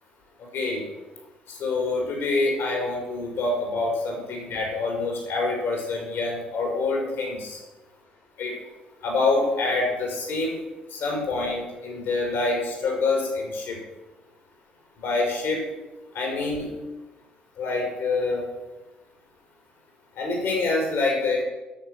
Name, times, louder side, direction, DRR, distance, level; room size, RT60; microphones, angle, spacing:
voice 1, 0.4-0.8 1.5-7.6 8.4-8.5 9.0-10.6 10.9-13.8 15.0-15.6 16.1-16.7 17.6-18.5 20.2-21.4, left 3 dB, 60° left, -1 dB, 4.9 m, -26 dB
12.5 x 6.7 x 6.2 m, 1.1 s
figure-of-eight pair, 45°, 4 cm